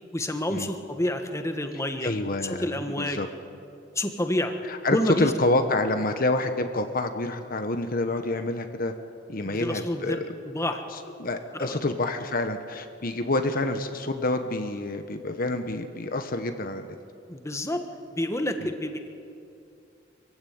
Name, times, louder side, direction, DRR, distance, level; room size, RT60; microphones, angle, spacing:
voice 1, 0.1-2.1 2.4-3.2 3.9-4.5 4.9-5.3 9.4-10.2 10.4-10.8 11.5-11.8 17.3-17.8 18.1-19.1, left 1 dB, 15° left, 6 dB, 1.5 m, -28 dB
voice 2, 2.0-3.3 4.6-8.9 9.3-10.3 10.9-17.0 18.6-18.7, left 2 dB, 50° left, 7 dB, 1.2 m, -28 dB
24.0 x 16.0 x 9.4 m, 2.5 s
head